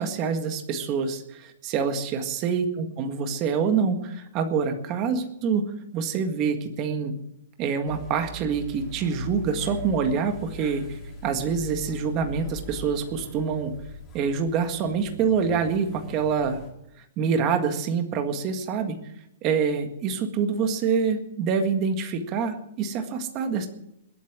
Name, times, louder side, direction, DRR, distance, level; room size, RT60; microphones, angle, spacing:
voice 1, 0.0-5.7 5.9-7.2 7.6-13.8 14.1-16.6 17.2-19.0 19.4-23.7, right 6 dB, 20° right, 6 dB, 1.8 m, -26 dB
sound 1, 7.8-16.7, left 2 dB, 10° left, 3.0 m, -41 dB
21.0 x 8.5 x 7.4 m, 0.80 s
hypercardioid pair, 180°, 0 cm